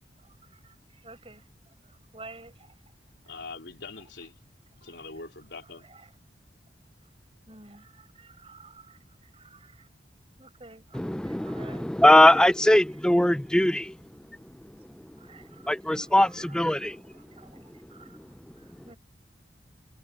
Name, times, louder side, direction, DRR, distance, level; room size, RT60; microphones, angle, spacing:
voice 1, 0.5-1.4 2.1-2.7 3.2-3.4 4.8-5.0 5.6-6.1 7.5-9.9 10.4-11.9 13.3-13.4 15.2-18.3 18.6-19.0, right 3 dB, 30° right, 6.4 m, -51 dB
voice 2, 3.3-4.4 4.8-5.9, left 3 dB, 80° left, 3.2 m, -42 dB
voice 3, 11.1-13.9 15.7-16.9, left 1 dB, 5° left, 0.3 m, -20 dB
head